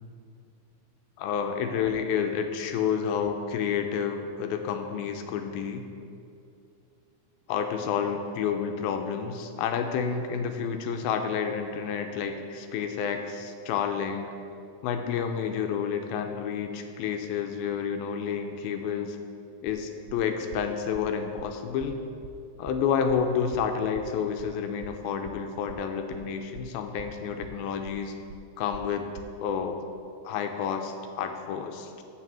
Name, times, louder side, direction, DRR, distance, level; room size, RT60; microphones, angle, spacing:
voice 1, 1.2-5.9 7.5-14.3 14.8-19.2 19.6-22.0 22.6-28.1 28.6-29.1 29.4-29.8 30.2-32.0, left 7 dB, 80° left, 6 dB, 2.3 m, -30 dB
sound 1, 19.7-29.4, right 4 dB, 80° right, 2.1 m, -46 dB
7.6 x 5.4 x 7.4 m, 2.5 s
omnidirectional pair, 4.5 m